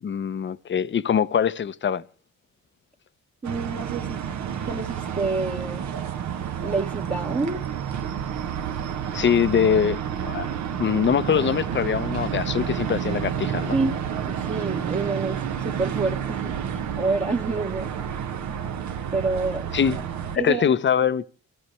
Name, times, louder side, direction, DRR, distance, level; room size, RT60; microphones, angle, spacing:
voice 1, 0.0-2.0 9.1-10.5 10.8-13.7 19.7-20.0 20.3-21.2, left 8 dB, 40° left, 0.7 m, -23 dB
voice 2, 3.4-4.2 4.6-5.9 6.6-7.6 13.7-14.0 14.3-17.9 19.1-20.0 20.4-20.6, right 3 dB, 25° right, 1.2 m, -28 dB
sound 1, 3.4-20.4, right 8 dB, 65° right, 1.3 m, -30 dB
28.0 x 14.0 x 3.2 m
cardioid pair, 90°, 30 cm